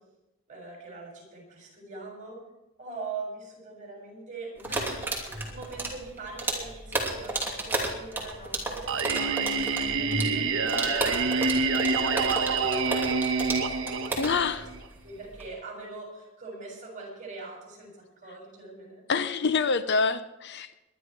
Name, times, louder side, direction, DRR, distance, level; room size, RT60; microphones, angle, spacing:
voice 1, 0.5-2.4 2.8-14.7 15.0-19.0, right 3 dB, 35° right, 0 dB, 6.8 m, -43 dB
sound 1, 4.6-15.5, right 2 dB, 10° right, 2.8 m, -32 dB
Singing, 8.9-14.8, right 4 dB, 60° right, 1.4 m, -27 dB
voice 2, 14.2-14.6 19.1-20.7, left 5 dB, 55° left, 12 dB, 0.7 m, -26 dB
21.0 x 11.5 x 4.6 m, 0.97 s
head